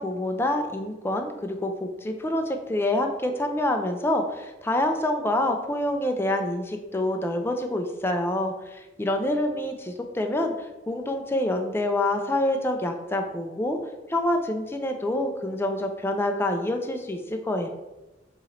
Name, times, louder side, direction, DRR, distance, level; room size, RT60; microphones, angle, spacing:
voice 1, 0.0-10.5 10.9-13.8 14.1-17.7, left 1 dB, 15° left, 5 dB, 0.4 m, -27 dB
4.3 x 3.0 x 3.8 m, 1.0 s
head